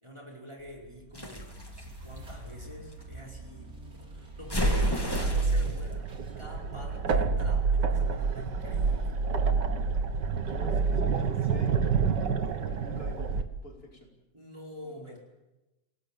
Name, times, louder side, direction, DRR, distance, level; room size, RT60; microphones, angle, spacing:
voice 1, 0.0-6.1 6.4-9.2 14.3-15.2, left 1 dB, 15° right, -1 dB, 5.2 m, -47 dB
sound 1, 0.6-9.7, right 1 dB, 55° right, 4.1 m, -47 dB
sound 2, 1.1-3.0 4.5-5.8, left 1 dB, 15° left, 2.7 m, -34 dB
sound 3, 4.6-13.4, right 5 dB, 80° right, 2.1 m, -28 dB
voice 2, 10.5-11.9 12.7-14.1 14.8-15.2, left 2 dB, 55° left, 2 dB, 5.4 m, -48 dB
28.5 x 18.0 x 8.9 m, 1.0 s
omnidirectional pair, 1.9 m